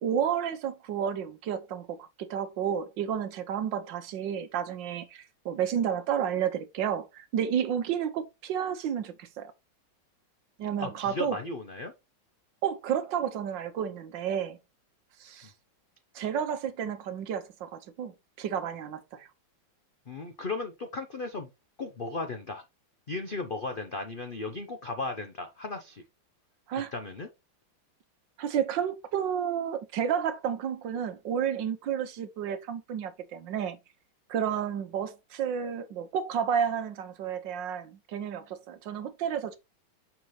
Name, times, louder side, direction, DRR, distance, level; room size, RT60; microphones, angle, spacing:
voice 1, 0.0-9.5 10.6-11.4 12.6-14.6 15.2-15.5 16.1-18.1 18.4-19.3 26.7-26.9 28.4-33.8 34.3-39.6, right 8 dB, 70° right, 1.5 m, -31 dB
voice 2, 10.8-11.9 20.1-21.5 21.8-22.6 23.1-26.0 26.9-27.3, left 3 dB, 70° left, 0.5 m, -36 dB
7.1 x 6.0 x 3.1 m
omnidirectional pair, 2.2 m